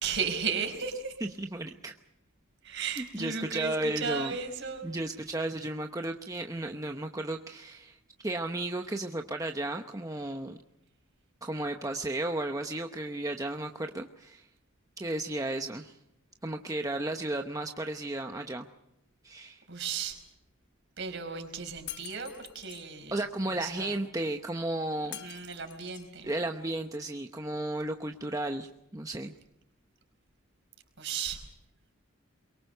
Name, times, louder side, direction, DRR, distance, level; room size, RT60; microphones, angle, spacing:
voice 1, 0.0-1.3 2.6-4.9 19.7-20.2 21.0-24.0 25.1-26.3 31.0-31.4, right 6 dB, 55° right, 5 dB, 4.7 m, -35 dB
voice 2, 1.4-1.9 3.2-4.3 4.8-8.0 8.2-10.6 11.4-14.5 15.0-16.0 16.4-18.7 19.2-19.6 23.1-25.2 26.2-29.3, right 2 dB, 15° right, 4 dB, 0.9 m, -34 dB
Shatter, 21.9-22.9 25.1-26.2, left 13 dB, 50° left, 0.8 m, -45 dB
23.5 x 23.0 x 6.7 m, 0.79 s
head